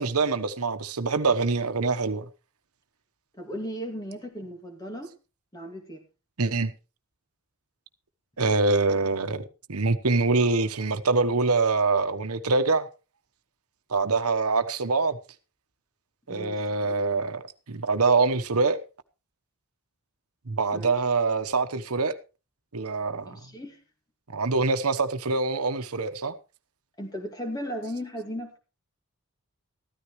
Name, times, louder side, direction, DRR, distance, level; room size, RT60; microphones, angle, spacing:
voice 1, 0.0-2.2 6.4-6.7 8.4-9.4 9.7-12.9 13.9-15.2 16.3-17.4 17.7-18.8 20.5-22.2 22.7-23.4 24.3-26.3, right 3 dB, 85° right, 1.1 m, -24 dB
voice 2, 3.4-5.1 5.5-6.0 16.3-16.5 16.8-16.9 20.7-20.9 23.3-23.8 27.0-28.6, equal, 15° left, 2.3 m, -36 dB
14.5 x 13.0 x 3.2 m
head